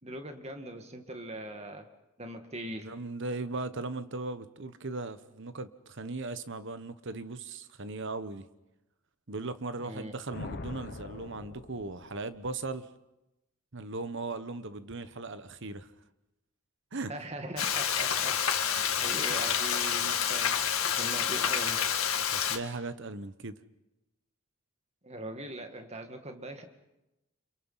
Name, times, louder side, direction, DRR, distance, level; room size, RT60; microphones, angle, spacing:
voice 1, 0.0-1.9 2.2-2.9 9.8-10.1 17.1-18.4 19.0-20.6 21.0-21.8 25.0-26.7, right 1 dB, 30° right, 2.1 m, -41 dB
voice 2, 2.8-8.5 9.3-12.9 13.7-15.9 16.9-17.1 19.2-19.3 22.2-23.5, right 3 dB, 60° right, 1.2 m, -38 dB
Thunder, 10.3-12.5, left 2 dB, 45° left, 0.9 m, -43 dB
Frying (food), 17.6-22.6, left 8 dB, 75° left, 2.1 m, -28 dB
29.5 x 27.0 x 5.8 m
head